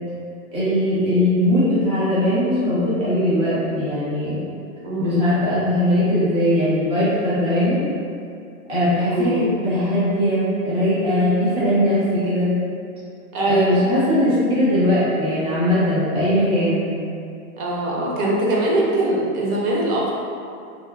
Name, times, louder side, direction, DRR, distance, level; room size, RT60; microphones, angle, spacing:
voice 1, 0.5-4.4 5.0-7.8 8.7-12.5 13.4-16.9, left 1 dB, 15° right, -12 dB, 0.7 m, -20 dB
voice 2, 4.8-5.2 9.0-9.4 13.3-13.9 17.6-20.1, right 1 dB, 85° right, -4 dB, 0.8 m, -22 dB
2.7 x 2.0 x 2.3 m, 2.4 s
supercardioid pair, 140°, 42 cm